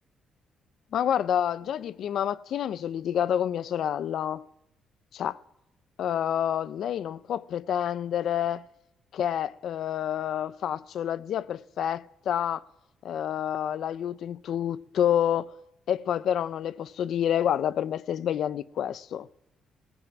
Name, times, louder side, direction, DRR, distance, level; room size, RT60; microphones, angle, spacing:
voice 1, 0.9-4.4 5.1-5.4 6.0-8.6 9.1-12.6 13.0-15.5 15.9-19.3, left 10 dB, 60° left, 0.6 m, -28 dB
18.5 x 15.5 x 9.0 m
cardioid pair, 155°, 0 cm